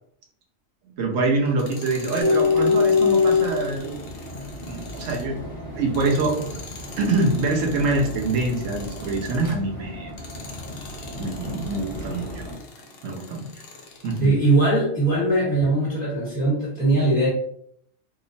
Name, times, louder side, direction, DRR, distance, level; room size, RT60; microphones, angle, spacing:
voice 1, 0.9-4.0 4.7-5.4 5.8-6.4 7.0-10.1 11.2-12.4 13.0-13.5 14.0-14.4, right 3 dB, 75° right, 0 dB, 1.0 m, -25 dB
Tools, 1.4-9.6 10.1-14.3, left 3 dB, 60° left, 0.6 m, -44 dB
sound 1, 2.2-12.5, left 4 dB, 35° right, 0.7 m, -27 dB
voice 2, 14.2-17.3, right 2 dB, 10° right, -8 dB, 0.9 m, -20 dB
2.9 x 2.0 x 2.6 m, 0.69 s
omnidirectional pair, 1.3 m